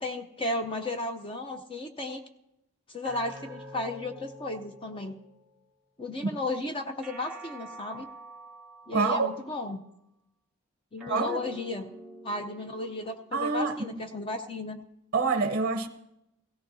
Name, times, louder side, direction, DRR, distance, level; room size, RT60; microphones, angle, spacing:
voice 1, 0.0-2.2 2.9-5.2 6.0-8.1 8.9-9.8 10.9-11.9 12.2-14.8, left 2 dB, 25° left, 0.6 m, -34 dB
sound 1, 3.0-5.6 7.0-9.6 11.0-13.6, right 1 dB, ahead, 1.9 m, -47 dB
voice 2, 8.9-9.3 11.1-11.5 13.3-13.9 15.1-15.9, right 4 dB, 40° right, 0.7 m, -26 dB
17.0 x 17.0 x 2.7 m
head